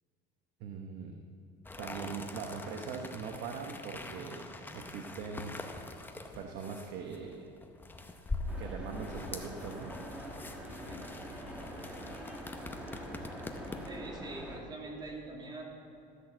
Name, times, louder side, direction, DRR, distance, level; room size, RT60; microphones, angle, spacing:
voice 1, 0.6-1.1 1.8-4.4 4.7-5.6 6.4-7.5 8.6-10.0, right 6 dB, 65° right, 2 dB, 1.0 m, -41 dB
sound 1, 1.6-14.1, left 2 dB, 10° left, 0.7 m, -44 dB
sound 2, 8.5-14.6, equal, 5° right, 1.6 m, -44 dB
voice 2, 13.8-15.6, right 2 dB, 20° right, -2 dB, 2.3 m, -44 dB
13.0 x 6.2 x 7.8 m, 2.7 s
cardioid pair, 150°, 19 cm